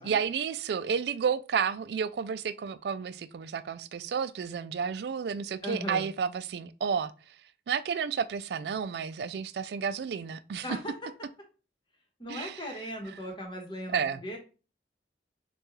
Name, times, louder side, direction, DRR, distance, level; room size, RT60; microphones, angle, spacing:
voice 1, 0.0-7.1 7.7-10.6 12.3-12.6 13.9-14.2, right 6 dB, 70° right, 0.3 m, -31 dB
voice 2, 5.6-6.1 10.6-10.9 12.2-14.4, equal, 25° left, 1.1 m, -38 dB
6.3 x 2.3 x 3.0 m
head